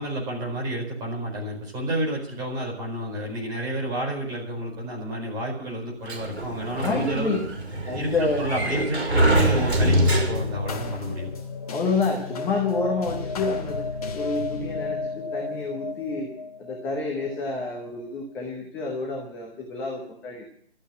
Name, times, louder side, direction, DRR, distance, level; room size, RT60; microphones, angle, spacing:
voice 1, 0.0-7.4 7.9-11.3, right 1 dB, 15° right, -3 dB, 4.7 m, -30 dB
Sliding door, 6.1-10.7, right 1 dB, 75° right, 5.2 m, -24 dB
voice 2, 6.8-7.4 7.8-8.8 11.7-13.9 14.1-16.3 16.6-20.5, left 3 dB, 5° left, -1 dB, 0.9 m, -28 dB
sound 1, 9.4-18.1, left 3 dB, 35° left, 1.7 m, -33 dB
13.5 x 9.1 x 9.9 m, 0.62 s
figure-of-eight pair, 150°, 33 cm